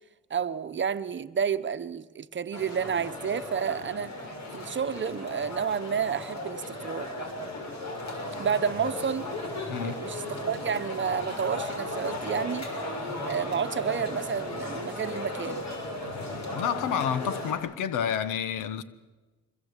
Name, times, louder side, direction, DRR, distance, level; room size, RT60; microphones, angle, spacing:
voice 1, 0.3-4.2 4.5-7.1 8.4-9.3 9.8-12.6 13.3-15.6, right 7 dB, 40° right, 1.1 m, -30 dB
sound 1, 2.5-17.5, left 1 dB, 60° left, 6.7 m, -36 dB
voice 2, 16.5-18.8, left 8 dB, 90° left, 1.4 m, -29 dB
25.0 x 22.0 x 8.3 m
cardioid pair, 90°, 30 cm